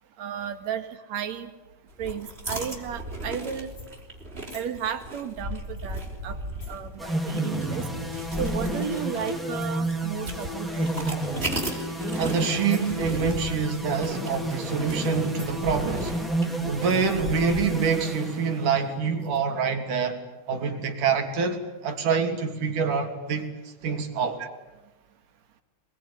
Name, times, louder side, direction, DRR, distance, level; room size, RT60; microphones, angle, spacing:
voice 1, 0.2-0.8 1.1-1.5 2.0-3.7 4.5-6.4 6.7-7.8 8.4-10.9 19.6-19.7 24.4-24.5, right 8 dB, 60° right, 3.1 m, -33 dB
sound 1, 1.9-18.0, right 1 dB, 20° right, 4.3 m, -37 dB
sound 2, 3.6-4.2 4.5-4.7 5.5-6.9 7.8-8.0 8.3-8.7 9.0-9.1 9.5-10.0 11.3-11.9 12.4-13.2 13.8-14.7 15.0-15.6 16.7-17.2 17.8-18.2 19.2-19.4, left 3 dB, 45° left, 6.6 m, -53 dB
sound 3, 7.0-18.9, right 1 dB, ahead, 3.3 m, -31 dB
voice 2, 12.2-16.2 16.7-20.2 20.5-24.4, right 5 dB, 80° right, 4.4 m, -26 dB
26.5 x 21.5 x 10.0 m
omnidirectional pair, 3.5 m